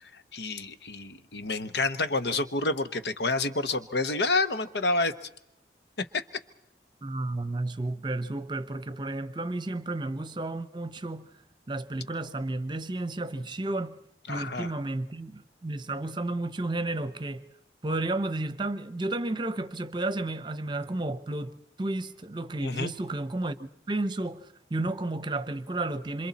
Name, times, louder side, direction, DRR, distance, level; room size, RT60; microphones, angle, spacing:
voice 1, 0.0-5.3 6.0-6.2 14.3-14.7 22.6-22.9, left 3 dB, 75° left, 1.1 m, -29 dB
voice 2, 7.0-11.3 11.7-14.0 14.3-17.4 17.8-26.3, right 2 dB, 25° right, 0.8 m, -32 dB
26.5 x 26.5 x 4.2 m
head